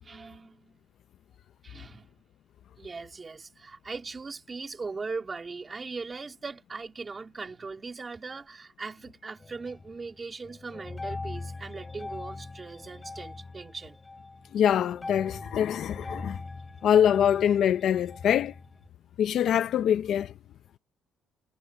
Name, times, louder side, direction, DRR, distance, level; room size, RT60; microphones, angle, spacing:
voice 1, 0.0-0.8 1.6-2.1 2.8-14.0, right 4 dB, 20° right, 3.0 m, -39 dB
sound 1, 9.4-10.2 10.4-18.9, left 3 dB, 15° left, 5.0 m, -41 dB
voice 2, 14.5-16.4 16.8-18.5 19.2-20.3, left 9 dB, 50° left, 0.6 m, -24 dB
cardioid pair, 175°, 0 cm